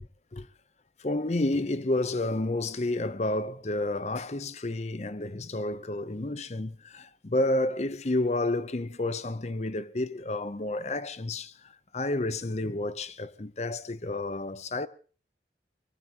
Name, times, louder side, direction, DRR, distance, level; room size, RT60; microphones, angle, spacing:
voice 1, 1.0-11.5 11.9-14.9, left 2 dB, 40° left, 0.7 m, -30 dB
23.0 x 20.5 x 2.9 m
head